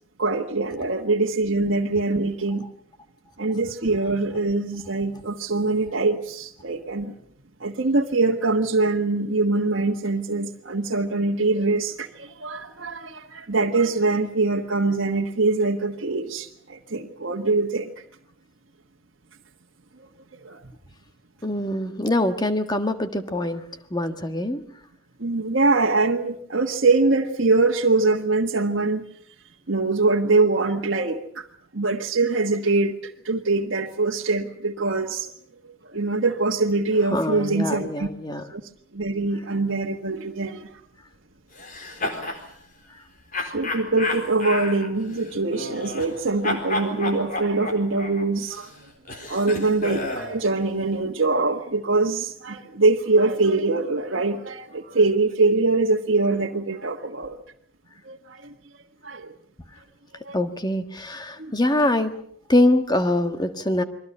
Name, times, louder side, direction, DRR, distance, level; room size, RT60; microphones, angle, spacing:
voice 1, 0.2-2.6 3.4-7.1 7.6-17.9 20.0-20.1 20.4-20.6 25.2-29.0 29.7-31.5 31.7-35.3 35.6-38.1 38.5-38.6 38.9-40.7 42.0-42.4 43.3-48.7 49.3-57.4 58.0-58.5 59.0-59.3 60.2-60.3 61.4-61.5, right 3 dB, 70° right, -1 dB, 1.6 m, -23 dB
voice 2, 21.4-23.6 23.9-24.6 37.1-38.5 60.3-62.2 62.5-63.8, left 1 dB, 20° left, 7 dB, 1.6 m, -23 dB
sound 1, 41.6-42.4 43.3-46.2 46.4-50.4, left 2 dB, 40° left, 4.1 m, -31 dB
29.5 x 23.0 x 5.6 m, 0.62 s
head